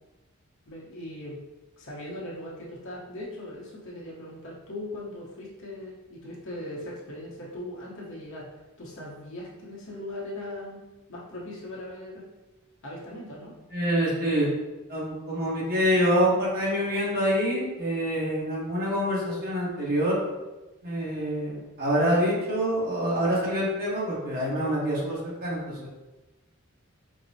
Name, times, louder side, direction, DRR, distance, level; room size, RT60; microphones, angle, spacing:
voice 1, 0.7-1.4 1.8-10.8 11.1-12.2 12.8-13.5, left 1 dB, 65° left, -5 dB, 1.0 m, -39 dB
voice 2, 13.7-14.5 14.9-20.2 20.8-25.9, equal, 45° right, -5 dB, 1.2 m, -26 dB
5.2 x 2.1 x 2.7 m, 1.1 s
head